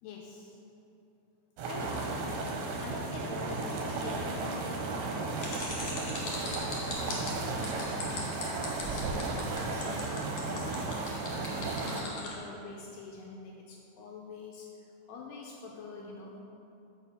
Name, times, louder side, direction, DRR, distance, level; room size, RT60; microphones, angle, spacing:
voice 1, 0.0-0.6 1.6-2.1 2.8-11.1 11.5-16.4, left 4 dB, 85° left, -1 dB, 2.4 m, -46 dB
sound 1, 1.6-12.0, right 3 dB, 75° right, 2.5 m, -34 dB
sound 2, 5.4-12.3, left 4 dB, 60° left, 1.8 m, -39 dB
Hands, 6.1-10.0 11.0-11.3, right 4 dB, 90° right, 2.9 m, -45 dB
7.1 x 4.8 x 6.8 m, 2.9 s
omnidirectional pair, 5.2 m